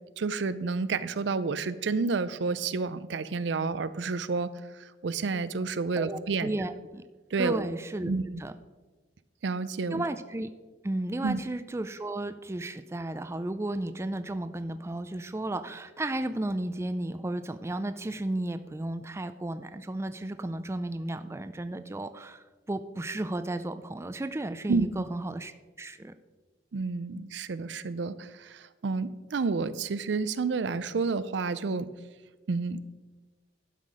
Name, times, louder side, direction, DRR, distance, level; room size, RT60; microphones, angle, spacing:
voice 1, 0.2-6.5 7.3-7.7 8.0-8.2 9.4-10.0 11.2-11.4 24.7-24.9 26.7-31.9 32.5-32.8, right 4 dB, 75° right, 15 dB, 0.5 m, -30 dB
voice 2, 6.0-7.1 7.4-8.1 8.4-8.5 9.9-10.5 10.8-25.5 25.8-26.1, right 1 dB, 15° right, 10 dB, 0.4 m, -33 dB
12.0 x 5.8 x 4.9 m, 1.2 s
head